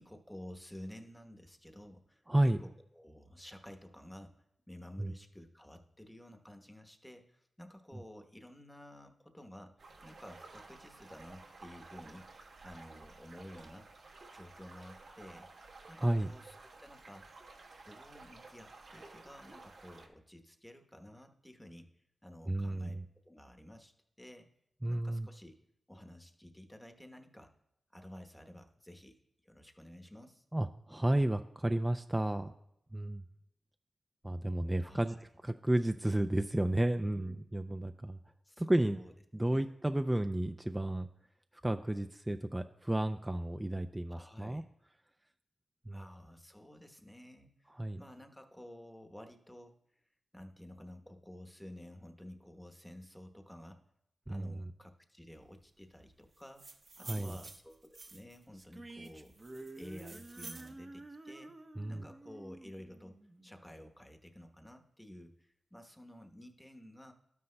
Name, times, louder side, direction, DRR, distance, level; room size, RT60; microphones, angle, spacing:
voice 1, 0.0-4.4 4.7-9.7 10.0-12.3 12.6-13.9 14.3-15.5 15.9-17.3 17.8-21.9 22.2-23.0 23.2-23.9 24.2-24.5 24.9-25.5 25.9-27.5 27.9-29.2 29.4-30.4 34.8-35.2 37.0-37.4 38.4-39.1 39.5-39.8 44.1-44.6 45.9-49.8 50.3-53.8 54.3-56.7 57.0-59.3 59.7-61.5 61.9-63.2 63.4-67.1, left 1 dB, 10° left, 5 dB, 1.0 m, -52 dB
voice 2, 2.3-2.6 5.0-5.1 16.0-16.3 22.5-23.0 24.8-25.3 30.5-32.5 32.9-33.2 34.2-35.2 35.4-38.2 38.6-39.0 39.3-41.1 41.6-44.6 45.9-46.0 47.7-48.0 54.3-54.6 57.0-57.4 61.8-62.1, right 1 dB, 15° right, 7 dB, 0.4 m, -32 dB
sound 1, 9.8-20.1, right 3 dB, 85° right, 1.3 m, -54 dB
sound 2, 56.4-58.4 59.0-60.7, right 3 dB, 55° right, 0.9 m, -51 dB
sound 3, 58.5-63.9, right 2 dB, 30° right, 0.7 m, -51 dB
12.0 x 9.5 x 2.2 m, 0.78 s
cardioid pair, 55°, 0 cm